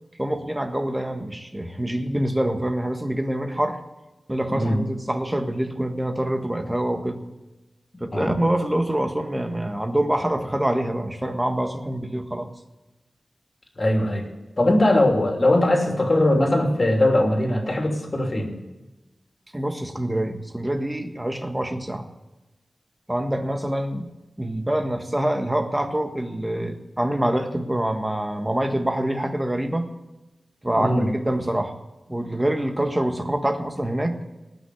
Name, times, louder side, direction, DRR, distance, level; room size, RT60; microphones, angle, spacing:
voice 1, 0.2-3.8 4.3-7.2 8.0-12.5 19.5-22.1 23.1-24.1 24.4-29.9 30.6-31.7 32.1-34.2, right 1 dB, 15° right, 6 dB, 1.5 m, -25 dB
voice 2, 13.8-14.3 14.6-18.5 30.7-31.1, left 1 dB, 35° left, 2 dB, 2.9 m, -20 dB
19.0 x 6.4 x 8.4 m, 1.1 s
wide cardioid pair, 100°, 0 cm